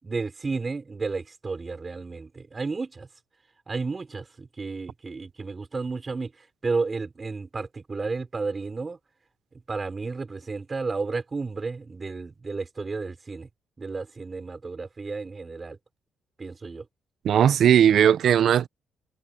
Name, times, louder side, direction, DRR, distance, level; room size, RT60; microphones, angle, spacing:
voice 1, 0.0-3.1 3.7-6.3 6.6-9.0 9.7-13.5 13.8-15.8 16.4-16.8, right 4 dB, 30° right, 5.7 m, -32 dB
voice 2, 17.2-18.7, right 9 dB, 65° right, 0.7 m, -18 dB
cardioid pair, 90°, 0 cm